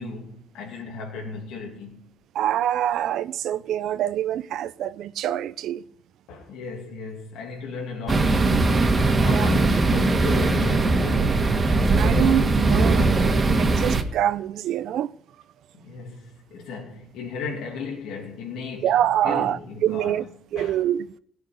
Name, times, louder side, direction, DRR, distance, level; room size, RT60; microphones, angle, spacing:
voice 1, 0.0-2.0 6.3-11.6 15.7-18.9 19.2-20.2 20.6-20.8, left 4 dB, 85° left, 2.7 m, -35 dB
voice 2, 2.3-5.8 9.2-9.5 12.0-15.1 18.8-20.2 20.5-21.1, right 11 dB, 80° right, 0.6 m, -25 dB
sound 1, 8.1-14.0, right 3 dB, 35° right, 2.0 m, -20 dB
17.0 x 6.4 x 9.9 m
cardioid pair, 90°, 0 cm